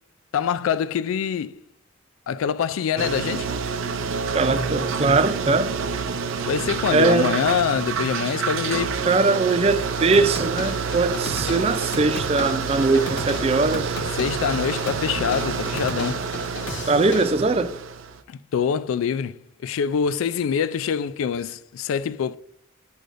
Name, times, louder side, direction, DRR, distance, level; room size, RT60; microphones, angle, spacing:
voice 1, 0.3-1.6 2.3-3.5 6.5-9.0 14.1-16.2 18.3-22.4, left 7 dB, 90° left, 0.3 m, -25 dB
sound 1, 3.0-18.2, right 5 dB, 80° right, 0.6 m, -28 dB
voice 2, 4.3-5.7 6.9-7.3 9.1-13.9 16.9-17.7, right 3 dB, 30° right, 0.4 m, -21 dB
sound 2, 10.1-17.3, left 2 dB, 65° left, 0.9 m, -35 dB
7.7 x 6.6 x 2.5 m
head